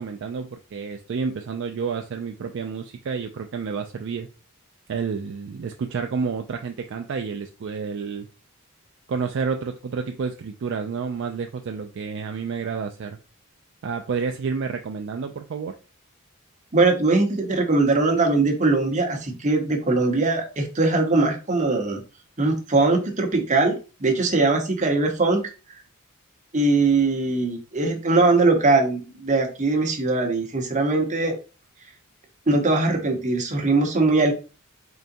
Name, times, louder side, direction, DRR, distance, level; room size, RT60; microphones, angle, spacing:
voice 1, 0.0-4.3 4.9-8.3 9.1-13.2 13.8-15.8, right 5 dB, 60° right, 0.3 m, -30 dB
voice 2, 16.7-22.0 22.4-25.4 26.5-31.4 32.5-34.3, right 3 dB, 35° right, 0.9 m, -21 dB
3.8 x 3.4 x 2.6 m
head